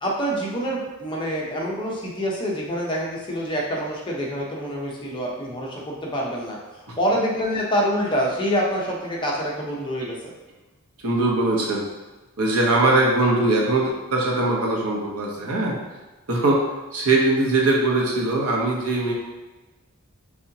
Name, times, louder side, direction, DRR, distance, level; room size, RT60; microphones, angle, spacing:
voice 1, 0.0-6.6 7.0-10.1, equal, 20° left, -3 dB, 0.8 m, -26 dB
voice 2, 11.0-11.8 12.4-15.8 16.3-16.6 16.9-19.1, right 2 dB, 75° right, -2 dB, 0.9 m, -21 dB
4.3 x 3.5 x 2.8 m, 1.1 s
head